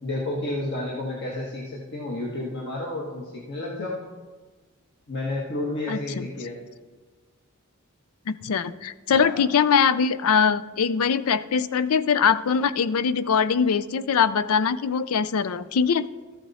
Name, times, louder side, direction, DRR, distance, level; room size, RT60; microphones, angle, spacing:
voice 1, 0.0-4.0 5.1-6.6 9.1-9.4, left 2 dB, 55° left, -3 dB, 1.5 m, -31 dB
voice 2, 5.9-6.3 8.3-16.1, left 6 dB, 90° left, 16 dB, 0.4 m, -22 dB
13.5 x 7.8 x 4.2 m, 1.3 s
head